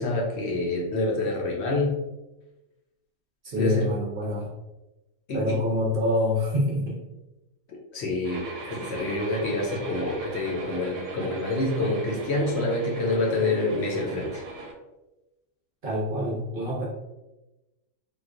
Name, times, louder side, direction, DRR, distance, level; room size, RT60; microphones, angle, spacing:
voice 1, 0.0-2.0 3.6-3.9 5.3-5.6 7.9-14.4, left 2 dB, 60° left, -1 dB, 0.8 m, -27 dB
voice 2, 3.4-4.5 5.3-7.0 15.8-16.9, left 1 dB, 55° right, -3 dB, 0.6 m, -26 dB
sound 1, 8.2-14.7, right 3 dB, 90° right, 1.0 m, -39 dB
3.8 x 2.4 x 2.4 m, 1.0 s
omnidirectional pair, 1.4 m